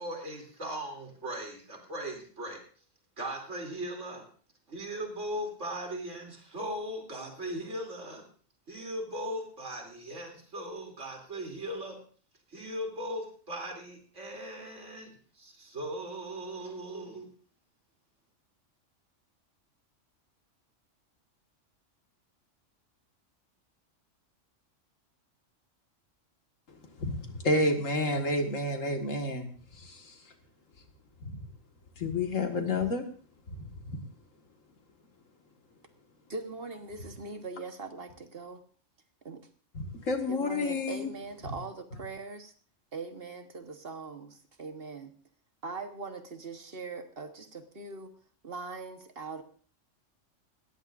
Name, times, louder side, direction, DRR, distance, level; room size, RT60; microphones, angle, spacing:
voice 1, 0.0-2.6 3.2-4.3 4.7-8.2 8.7-12.0 12.5-17.3, equal, 70° right, 1 dB, 3.4 m, -38 dB
voice 2, 27.0-29.5 29.7-30.2 31.2-31.3 32.0-33.1 33.5-34.0 39.7-41.1, left 2 dB, 80° left, 4 dB, 2.1 m, -30 dB
voice 3, 36.3-38.6 39.2-39.4 40.3-42.5 42.9-45.2 45.6-48.1 48.4-49.4, right 4 dB, 50° right, 7 dB, 1.5 m, -41 dB
19.5 x 14.0 x 2.6 m, 0.42 s
omnidirectional pair, 1.3 m